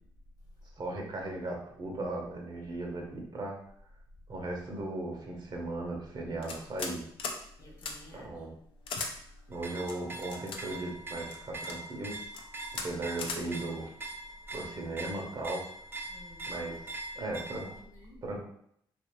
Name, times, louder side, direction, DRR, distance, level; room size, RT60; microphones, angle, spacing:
voice 1, 0.8-3.6 4.3-7.0 8.1-8.5 9.5-12.2 12.8-13.9 14.5-15.7 16.5-16.7 17.2-17.7 18.2-18.5, right 2 dB, 50° right, 0 dB, 0.8 m, -37 dB
sound 1, 6.4-6.9 7.2-7.4 7.8-7.9 8.9-9.1 9.9-10.6 11.3-11.8 12.3-12.4 12.7-12.9 13.2-13.4, left 4 dB, 70° left, 0.5 m, -37 dB
voice 2, 7.6-8.3 9.3-9.4 16.1-18.2, left 1 dB, 45° left, -1 dB, 1.1 m, -52 dB
sound 2, 9.5-17.8, right 2 dB, 25° right, 0.4 m, -43 dB
2.9 x 2.5 x 3.0 m, 0.69 s
supercardioid pair, 65°, 9 cm